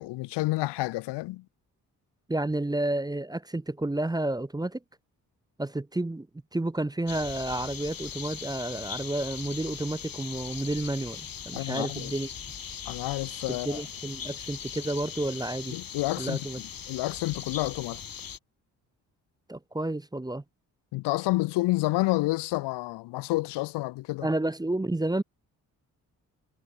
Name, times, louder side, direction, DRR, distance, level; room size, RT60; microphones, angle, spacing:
voice 1, 0.0-1.4 11.5-12.1 12.9-13.8 15.7-16.4 16.9-18.0 20.9-24.3, left 20 dB, 70° left, 0.6 m, -29 dB
voice 2, 2.3-4.8 5.6-6.3 6.5-12.3 13.5-15.8 16.2-16.6 19.5-20.4 24.2-25.2, right 1 dB, 10° right, 0.8 m, -30 dB
sound 1, 7.1-18.4, left 7 dB, 50° left, 3.2 m, -40 dB
hypercardioid pair, 45°, 43 cm